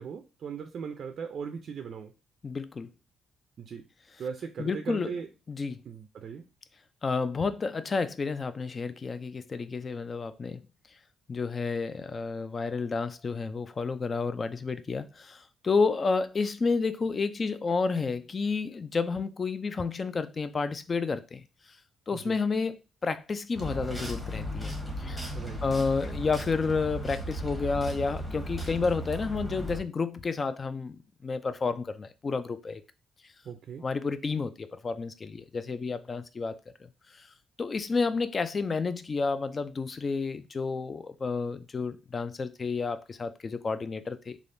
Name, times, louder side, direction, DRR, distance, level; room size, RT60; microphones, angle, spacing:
voice 1, 0.0-2.1 3.6-3.9 4.2-5.3 5.9-6.5 22.1-22.4 25.3-25.6 33.5-33.9, right 6 dB, 60° right, 0.4 m, -38 dB
voice 2, 2.4-2.9 4.6-5.1 5.5-5.8 7.0-10.6 11.3-21.4 22.1-24.7 25.0-25.3 25.6-32.8 33.8-36.6 37.2-37.3 37.6-44.4, left 4 dB, 35° left, 0.3 m, -30 dB
sound 1, 23.5-29.8, equal, 5° left, 1.1 m, -36 dB
3.3 x 2.4 x 2.6 m
cardioid pair, 90°, 0 cm